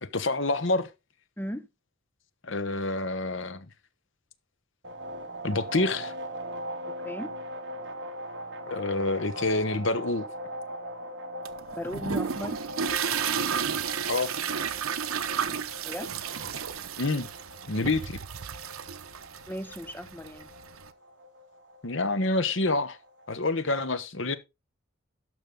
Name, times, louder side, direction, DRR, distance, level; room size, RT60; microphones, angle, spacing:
voice 1, 0.0-0.9 2.4-3.6 5.4-6.1 8.7-10.3 14.1-14.3 17.0-17.3 17.7-18.2 21.8-23.0 23.3-24.4, left 2 dB, 60° left, 1.1 m, -27 dB
voice 2, 1.4-1.7 7.0-7.3 11.7-12.6 15.8-16.1 19.5-20.5, equal, 10° left, 0.7 m, -36 dB
sound 1, 4.8-23.4, right 1 dB, 55° right, 1.7 m, -41 dB
sound 2, 11.4-20.9, right 7 dB, 80° right, 0.9 m, -32 dB
12.0 x 6.3 x 3.8 m
head